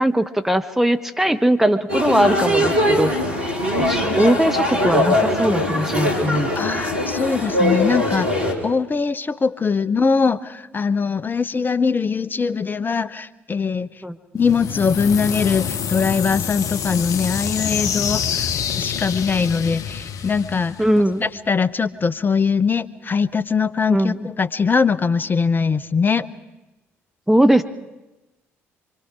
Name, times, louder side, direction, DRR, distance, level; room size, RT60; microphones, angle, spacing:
voice 1, 0.0-3.1 3.7-6.5 14.0-14.2 20.8-21.2 23.9-24.3 27.3-27.6, right 1 dB, 5° right, 8 dB, 1.1 m, -19 dB
sound 1, 1.9-8.5, left 1 dB, 80° right, 2.9 m, -21 dB
voice 2, 6.6-8.3 8.6-13.9 14.3-18.5 18.8-20.8 21.2-26.3, left 5 dB, 25° left, 14 dB, 1.0 m, -21 dB
sound 2, 14.4-21.3, left 8 dB, 55° left, 0.8 m, -26 dB
25.5 x 24.5 x 5.0 m, 1.1 s
figure-of-eight pair, 50°, 7 cm